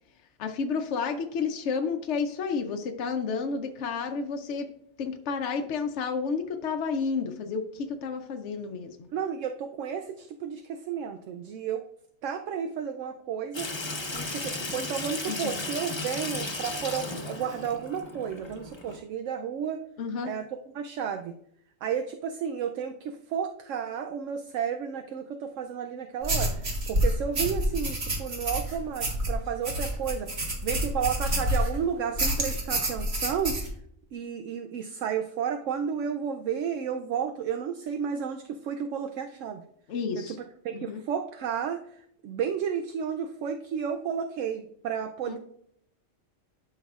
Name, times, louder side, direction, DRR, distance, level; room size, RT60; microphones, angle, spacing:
voice 1, 0.4-4.7 5.0-9.0 15.3-15.6 20.0-20.3 39.9-40.4 40.7-41.0 45.3-45.4, left 5 dB, 70° left, 5 dB, 0.9 m, -31 dB
voice 2, 9.1-11.8 12.2-13.7 14.1-19.8 20.2-20.4 20.7-21.3 21.8-33.5 34.1-39.6 40.2-40.4 40.6-45.4, right 7 dB, 75° right, 5 dB, 0.9 m, -32 dB
Water tap faucet / Sink (filling or washing), 13.5-19.0, left 2 dB, 25° left, 0.9 m, -35 dB
sound 1, 26.2-31.8 32.2-33.7, right 1 dB, 55° right, 1.8 m, -28 dB
12.0 x 5.6 x 2.4 m, 0.70 s
omnidirectional pair, 1.3 m